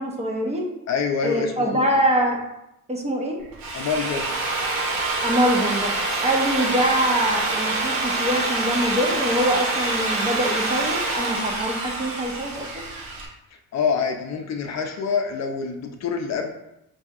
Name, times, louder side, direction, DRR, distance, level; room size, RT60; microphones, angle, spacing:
voice 1, 0.0-0.7 1.2-2.4 2.9-3.4 5.2-5.9 6.2-12.8, right 1 dB, 20° right, 1 dB, 0.5 m, -24 dB
voice 2, 0.9-1.9 3.7-4.3 13.7-16.5, left 5 dB, 55° left, 5 dB, 0.5 m, -26 dB
Drill, 3.4-13.3, right 2 dB, 90° right, 0.9 m, -26 dB
5.5 x 2.7 x 2.4 m, 0.86 s
cardioid pair, 145°, 33 cm